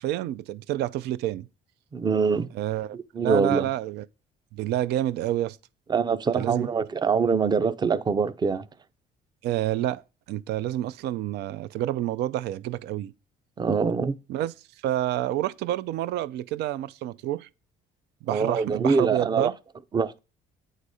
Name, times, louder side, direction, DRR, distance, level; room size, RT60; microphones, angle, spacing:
voice 1, 0.0-1.5 2.5-3.0 3.2-4.1 4.5-5.6 6.3-6.7 9.4-10.0 10.3-13.1 14.3-14.5 14.8-17.5 18.2-19.5, right 13 dB, 80° right, 0.4 m, -28 dB
voice 2, 1.9-2.5 2.9-3.6 5.9-8.7 13.6-14.2 18.3-19.5 19.9-20.2, right 5 dB, 25° right, 0.5 m, -24 dB
9.0 x 4.1 x 4.8 m
cardioid pair, 110°, 17 cm